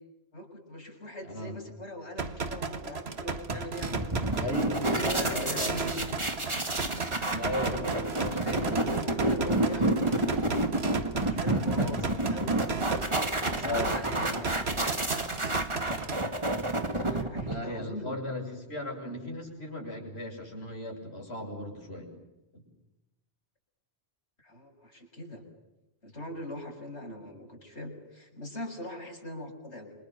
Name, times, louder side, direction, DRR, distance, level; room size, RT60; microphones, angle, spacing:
voice 1, 0.3-4.3 4.9-6.0 7.7-10.7 11.1-12.6 13.5-14.6 17.0-18.2 24.4-25.4 26.0-29.9, left 1 dB, 90° left, 1 dB, 7.2 m, -41 dB
sound 1, 2.2-16.2, right 4 dB, 70° right, 1.9 m, -35 dB
psy glitch noise, 3.5-17.8, right 1 dB, 25° right, 2.3 m, -30 dB
voice 2, 4.4-6.1 6.5-7.8 11.8-11.9 13.6-13.9 17.5-22.1 22.5-22.6, left 1 dB, 70° left, 0 dB, 8.5 m, -37 dB
29.0 x 26.5 x 6.9 m, 0.97 s
omnidirectional pair, 1.1 m